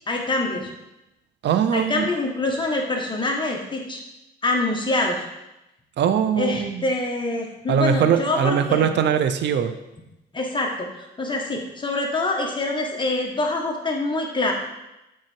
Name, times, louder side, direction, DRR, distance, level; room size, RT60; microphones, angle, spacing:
voice 1, 0.1-0.7 1.7-4.0 4.4-5.2 6.4-9.0 10.3-10.9 11.2-14.5, left 2 dB, 25° left, 0 dB, 1.6 m, -25 dB
voice 2, 1.4-2.1 6.0-6.8 7.7-9.8, right 8 dB, 60° right, 10 dB, 0.6 m, -21 dB
7.6 x 4.2 x 4.7 m, 0.93 s
cardioid pair, 90°, 20 cm